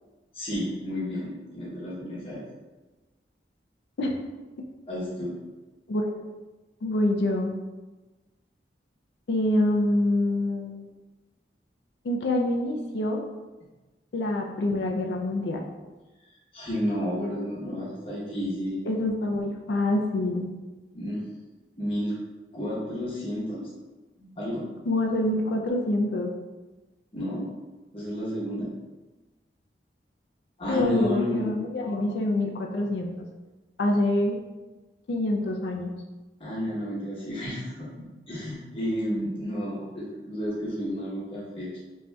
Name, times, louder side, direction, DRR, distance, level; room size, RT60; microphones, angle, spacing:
voice 1, 0.3-2.4 4.9-5.4 16.3-18.8 20.9-21.3 21.8-22.1 22.5-23.7 24.2-24.7 27.1-27.5 27.9-28.7 30.6-31.5 36.4-41.8, equal, 30° left, -7 dB, 0.9 m, -31 dB
voice 2, 5.9-6.2 6.8-7.5 9.3-10.8 12.0-13.2 14.1-15.6 18.9-20.5 24.9-26.3 30.7-33.1 33.8-34.4 35.1-35.9, left 1 dB, 80° left, 1 dB, 0.4 m, -26 dB
5.3 x 2.7 x 2.3 m, 1.2 s
head